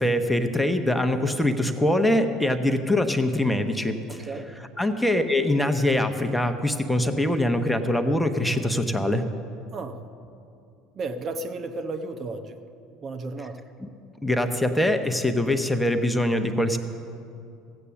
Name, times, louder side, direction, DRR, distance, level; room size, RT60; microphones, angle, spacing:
voice 1, 0.0-4.3 4.8-9.2 13.8-13.9 14.2-16.8, left 1 dB, 5° left, 7 dB, 1.0 m, -23 dB
voice 2, 4.1-4.5 9.7-10.0 10.9-12.6 13.0-13.7, right 3 dB, 40° right, 6 dB, 0.9 m, -33 dB
15.0 x 8.4 x 7.1 m, 2.6 s
figure-of-eight pair, 65°, 0 cm